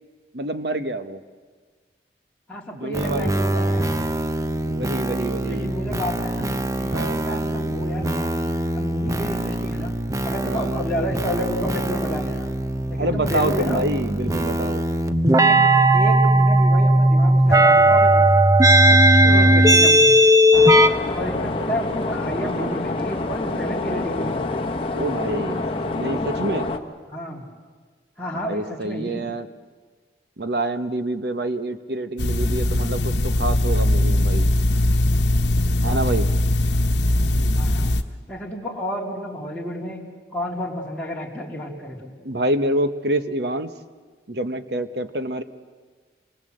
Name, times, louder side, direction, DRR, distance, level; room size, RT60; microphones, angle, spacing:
voice 1, 0.3-1.2 2.7-3.9 4.6-5.7 6.9-7.2 10.4-10.8 13.0-14.8 18.9-19.7 22.4-22.8 24.9-26.8 28.3-29.5 30.4-34.5 35.8-36.3 42.2-43.7 44.3-45.4, right 1 dB, 65° right, 10 dB, 1.1 m, -27 dB
voice 2, 2.5-4.0 5.4-6.5 6.8-8.3 8.7-9.9 10.2-12.5 12.9-13.8 14.2-14.4 15.3-18.4 19.3-20.2 21.1-24.6 27.1-27.5 28.2-29.3 35.8-36.1 37.5-37.9 38.3-40.1 40.3-42.1, equal, 5° left, -5 dB, 2.9 m, -31 dB
sound 1, 2.9-20.9, right 1 dB, 20° right, 0.7 m, -18 dB
sound 2, 20.5-26.8, left 2 dB, 30° left, 1.2 m, -27 dB
sound 3, 32.2-38.0, left 1 dB, 75° left, 1.1 m, -20 dB
26.5 x 20.0 x 7.8 m, 1.5 s
head